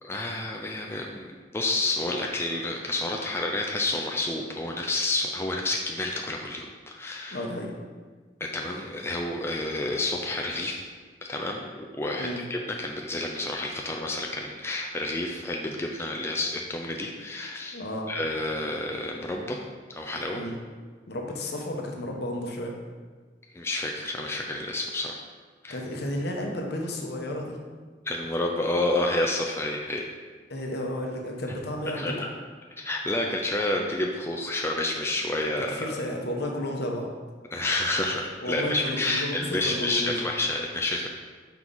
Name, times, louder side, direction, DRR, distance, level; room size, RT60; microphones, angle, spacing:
voice 1, 0.0-7.4 8.4-10.8 11.3-17.8 18.1-19.6 19.9-20.4 23.5-25.2 25.6-25.8 28.1-30.1 31.9-32.3 32.8-35.8 37.5-41.1, left 2 dB, 15° left, 0 dB, 0.4 m, -29 dB
voice 2, 7.3-7.7 12.2-12.4 17.7-18.1 20.3-20.6 21.1-22.7 25.7-27.6 30.5-32.1 35.7-37.1 38.4-40.1, left 1 dB, 65° left, 1 dB, 1.0 m, -32 dB
5.7 x 4.6 x 3.9 m, 1.5 s
head